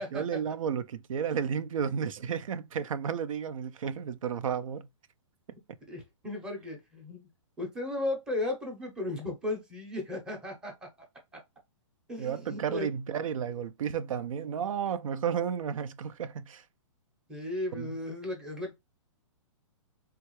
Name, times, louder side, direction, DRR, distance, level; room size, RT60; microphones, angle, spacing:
voice 1, 0.0-4.9 12.2-16.6 17.7-17.9, right 7 dB, 90° right, 0.4 m, -32 dB
voice 2, 5.9-7.2 7.6-10.9 11.3-11.4 12.1-12.9 17.3-18.7, left 2 dB, 5° right, 0.6 m, -35 dB
3.3 x 2.3 x 3.0 m
hypercardioid pair, 160°, 17 cm